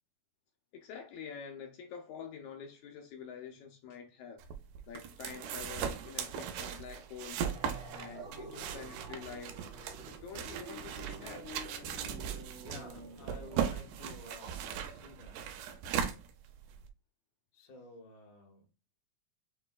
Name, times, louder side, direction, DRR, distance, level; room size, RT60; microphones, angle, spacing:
voice 1, 0.7-4.4 4.9-7.5 7.9-9.6 10.2-11.5, left 7 dB, 75° left, 1.8 m, -47 dB
sound 1, 4.4-16.9, right 8 dB, 85° right, 2.2 m, -38 dB
sound 2, 7.4-14.2, right 2 dB, 65° right, 1.1 m, -48 dB
voice 2, 12.5-15.4 17.5-18.7, left 3 dB, 55° left, 1.0 m, -53 dB
6.8 x 3.1 x 2.2 m
omnidirectional pair, 3.7 m